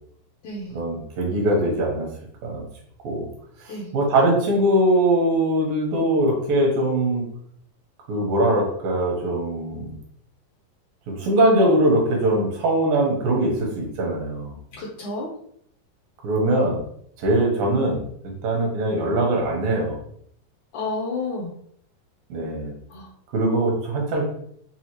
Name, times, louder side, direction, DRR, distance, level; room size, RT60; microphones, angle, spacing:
voice 1, 0.7-2.1 2.4-2.6 3.0-3.3 3.6-7.2 8.1-9.9 11.1-14.6 16.2-16.8 17.2-18.1 18.4-20.0 22.3-22.7 23.3-24.3, right 1 dB, 75° right, -1 dB, 2.8 m, -21 dB
voice 2, 14.7-15.3 20.7-21.5 22.9-23.1, left 3 dB, 70° left, -4 dB, 2.0 m, -30 dB
7.0 x 2.4 x 3.0 m, 0.67 s
omnidirectional pair, 4.2 m